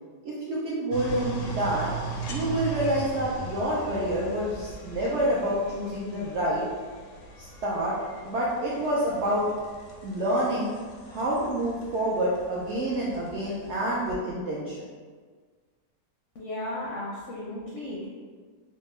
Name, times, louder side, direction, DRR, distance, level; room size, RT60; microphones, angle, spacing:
voice 1, 0.2-1.9 2.3-6.6 7.4-7.9 8.2-9.4 10.0-10.7 11.1-14.8, right 1 dB, 75° right, -6 dB, 0.6 m, -28 dB
sound 1, 0.9-14.2, right 3 dB, 90° left, 1.2 m, -39 dB
voice 2, 16.3-18.1, left 1 dB, 70° left, -4 dB, 0.7 m, -35 dB
3.6 x 2.2 x 3.1 m, 1.5 s
omnidirectional pair, 1.7 m